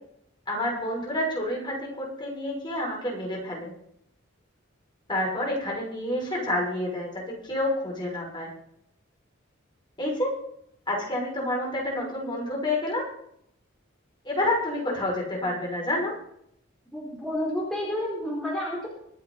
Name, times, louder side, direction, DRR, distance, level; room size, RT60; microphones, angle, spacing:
voice 1, 0.5-3.7 5.1-7.1 7.4-8.5 10.0-10.3 10.9-13.0 14.2-16.1, left 1 dB, 25° left, -3 dB, 6.1 m, -28 dB
voice 2, 16.9-18.9, left 1 dB, 5° left, -6 dB, 4.5 m, -30 dB
25.0 x 8.5 x 4.1 m, 0.73 s
head